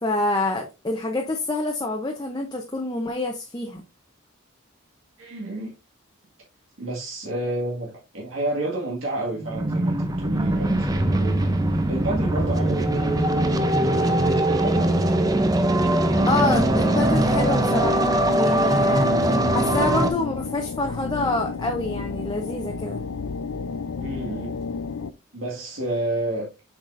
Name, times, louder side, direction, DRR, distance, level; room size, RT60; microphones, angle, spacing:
voice 1, 0.0-3.8 16.3-19.1 19.5-23.0, left 2 dB, 20° left, 0.7 m, -27 dB
voice 2, 5.2-5.7 6.8-14.9 24.0-24.6 25.3-26.5, right 1 dB, 75° right, 1.9 m, -30 dB
sound 1, 9.4-20.1, right 1 dB, 15° right, 0.6 m, -21 dB
sound 2, 16.2-25.1, left 4 dB, 80° left, 0.5 m, -31 dB
7.5 x 4.9 x 2.6 m
head